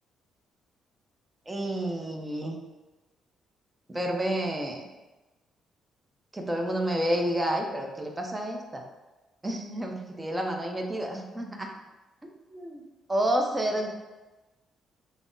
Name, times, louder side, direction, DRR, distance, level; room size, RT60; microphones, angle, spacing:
voice 1, 1.5-2.6 3.9-4.8 6.3-8.8 9.4-11.7 12.5-12.8 13.1-13.9, right 1 dB, 15° right, 2 dB, 0.6 m, -29 dB
3.5 x 2.0 x 3.8 m, 1.1 s
cardioid pair, 90°, 0 cm